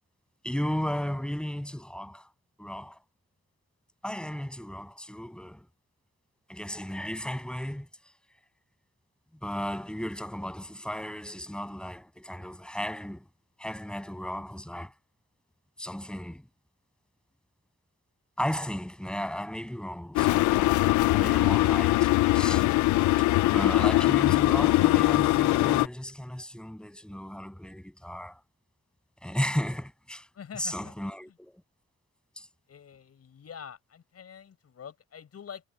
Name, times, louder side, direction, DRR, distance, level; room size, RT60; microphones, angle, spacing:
voice 1, 0.4-2.3 2.6-3.0 4.0-5.7 6.5-7.9 9.4-13.3 13.6-14.9 15.8-16.4 18.4-20.8 21.1-22.7 23.5-28.4 29.2-30.3 30.6-31.6 32.4-32.5, equal, 5° left, 7.5 m, -35 dB
sound 1, 20.2-25.9, left 18 dB, 75° left, 0.5 m, -22 dB
voice 2, 30.3-31.4 32.7-35.6, left 7 dB, 55° left, 7.3 m, -46 dB
cardioid pair, 90°, 30 cm